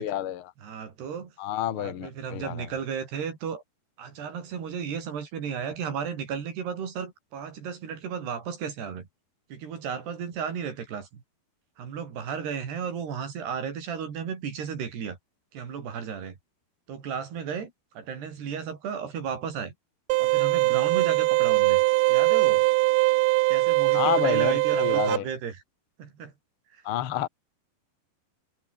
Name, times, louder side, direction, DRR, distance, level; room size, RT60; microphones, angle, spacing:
voice 1, 0.0-0.5 1.4-2.7 23.9-25.3 26.8-27.3, left 12 dB, 90° left, 1.1 m, -29 dB
voice 2, 0.6-1.3 1.7-3.6 4.0-9.1 9.5-11.2 11.8-15.2 15.5-16.4 16.9-19.7 20.2-21.8 22.1-22.7 23.5-25.6 26.0-26.3, right 7 dB, 70° right, 5.8 m, -34 dB
sound 1, 20.1-25.2, right 22 dB, 85° right, 2.8 m, -22 dB
omnidirectional pair, 4.9 m